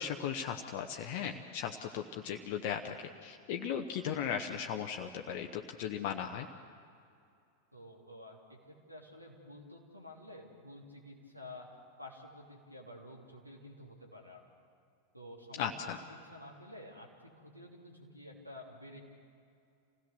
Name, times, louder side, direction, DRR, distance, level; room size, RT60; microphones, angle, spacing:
voice 1, 0.0-3.0 3.2-6.5 15.6-16.0, left 8 dB, 50° left, 3 dB, 1.0 m, -37 dB
voice 2, 7.7-11.7 12.0-14.4 15.1-19.0, left 1 dB, 90° right, -1 dB, 3.3 m, -51 dB
27.5 x 17.0 x 6.8 m, 2.5 s
figure-of-eight pair, 90°, 0 cm